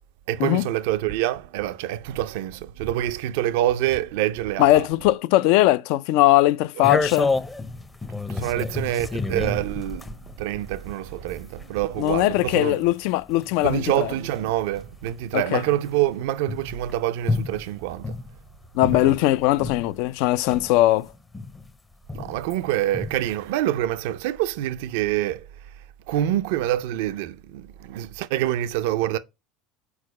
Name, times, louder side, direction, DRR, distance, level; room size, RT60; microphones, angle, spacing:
voice 1, 0.3-4.8 8.3-10.0 10.4-12.8 13.6-18.1 19.0-19.2 22.1-25.4 26.1-29.2, right 13 dB, 80° right, 0.4 m, -26 dB
voice 2, 4.6-7.3 12.0-14.1 15.3-15.6 18.7-21.1, left 16 dB, 70° left, 0.3 m, -20 dB
sound 1, 6.8-20.0 20.4-22.6 22.9-23.4, left 3 dB, 15° left, 0.6 m, -31 dB
4.7 x 4.4 x 4.7 m
supercardioid pair, 105°, 0 cm